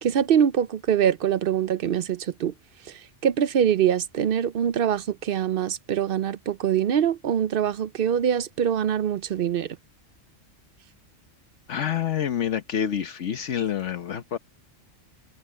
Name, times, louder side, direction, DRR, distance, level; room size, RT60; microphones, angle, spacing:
voice 1, 0.0-2.5 2.9-9.8, right 9 dB, 60° right, 0.7 m, -24 dB
voice 2, 11.7-14.4, left 9 dB, 70° left, 1.2 m, -27 dB
omnidirectional pair, 1.3 m